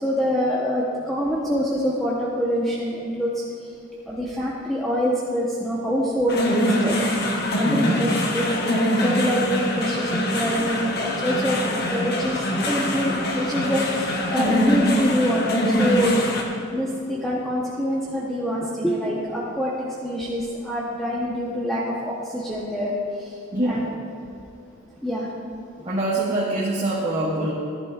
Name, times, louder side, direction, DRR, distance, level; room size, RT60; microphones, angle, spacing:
voice 1, 0.0-3.3 4.1-7.0 7.6-16.2 16.7-19.7 20.0-22.9 23.6-23.8 25.0-25.3, equal, ahead, -7 dB, 0.9 m, -25 dB
sound 1, 6.3-16.4, left 1 dB, 50° left, 1.1 m, -23 dB
voice 2, 7.6-8.0 23.5-23.9 25.8-27.5, right 1 dB, 30° right, -8 dB, 1.5 m, -24 dB
14.0 x 11.5 x 2.4 m, 2.7 s
head